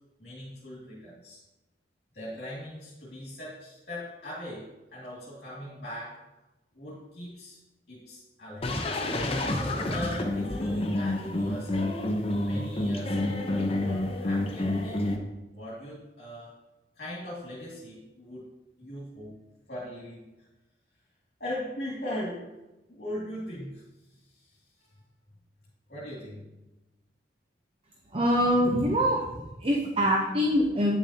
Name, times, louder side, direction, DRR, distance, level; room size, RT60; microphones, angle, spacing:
voice 1, 0.2-1.4 2.1-6.2 6.7-7.6 7.9-8.7 9.4-12.0 12.4-15.2 15.5-16.6 17.0-18.5 18.8-19.4 19.7-20.3 21.4-22.6 22.9-23.8 24.3-24.9 25.9-26.5, left 1 dB, 60° left, -6 dB, 2.2 m, -39 dB
sound 1, 8.6-15.2, left 1 dB, 35° left, 0.8 m, -29 dB
voice 2, 28.1-31.0, equal, 30° right, 0 dB, 0.7 m, -24 dB
9.4 x 6.9 x 2.8 m, 1.0 s
head